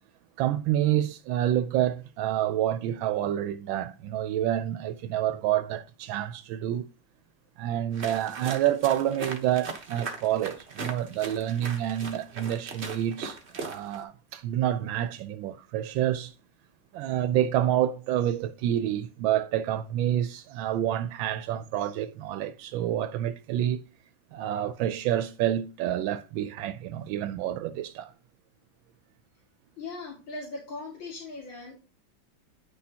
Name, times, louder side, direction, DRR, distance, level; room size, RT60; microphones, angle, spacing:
voice 1, 0.4-6.9 7.6-16.3 16.9-23.8 24.3-28.1, right 11 dB, 85° right, 1.3 m, -28 dB
sound 1, 7.9-14.0, right 4 dB, 40° right, 1.2 m, -39 dB
voice 2, 29.8-31.7, left 3 dB, 80° left, 2.9 m, -39 dB
9.8 x 6.3 x 2.8 m
omnidirectional pair, 2.1 m